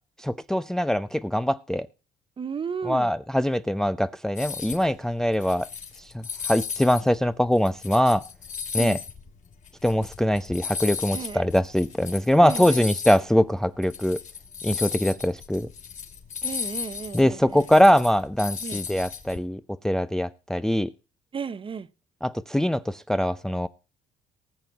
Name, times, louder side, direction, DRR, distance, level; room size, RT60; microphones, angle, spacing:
voice 1, 0.2-1.9 2.8-5.7 6.5-8.2 8.7-9.0 9.8-14.2 14.6-15.7 17.1-20.9 22.2-23.7, equal, 5° left, 0.5 m, -22 dB
voice 2, 2.4-3.1 8.8-9.0 11.1-11.4 12.4-12.8 16.4-17.9 18.6-18.8 21.3-21.9, right 6 dB, 30° right, 0.9 m, -34 dB
sound 1, 4.4-4.9 5.3-7.0 7.4-13.2 13.5-13.6 13.8-19.4, left 6 dB, 45° left, 3.0 m, -35 dB
19.0 x 7.8 x 4.0 m
cardioid pair, 110°, 17 cm